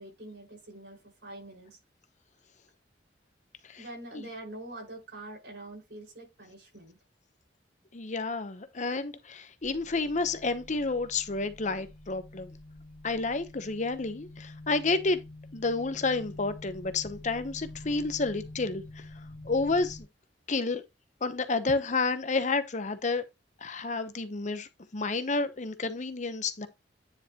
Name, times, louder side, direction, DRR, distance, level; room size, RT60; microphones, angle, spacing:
voice 1, 0.0-1.8 3.8-7.0, right 1 dB, 80° right, 5.5 m, -45 dB
voice 2, 7.9-12.5 13.0-15.2 15.5-19.0 19.4-20.0 20.5-20.8 21.2-23.2 23.6-26.7, left 3 dB, 45° left, 0.9 m, -30 dB
sound 1, 9.6-20.0, left 1 dB, 30° left, 2.1 m, -47 dB
9.7 x 4.7 x 3.0 m
head